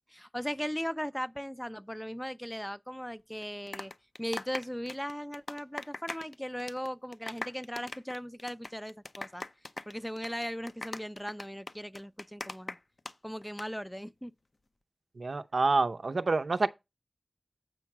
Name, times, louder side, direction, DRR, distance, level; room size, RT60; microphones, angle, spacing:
voice 1, 0.1-3.9 4.2-9.4 9.9-12.8 13.2-14.3, equal, 5° left, 0.4 m, -38 dB
sound 1, 3.4-6.3 6.6-6.9 7.1-13.1 13.4-13.7, left 2 dB, 60° left, 0.6 m, -41 dB
voice 2, 15.2-16.7, right 3 dB, 80° right, 0.6 m, -27 dB
8.0 x 4.5 x 5.9 m
wide cardioid pair, 40°, 0 cm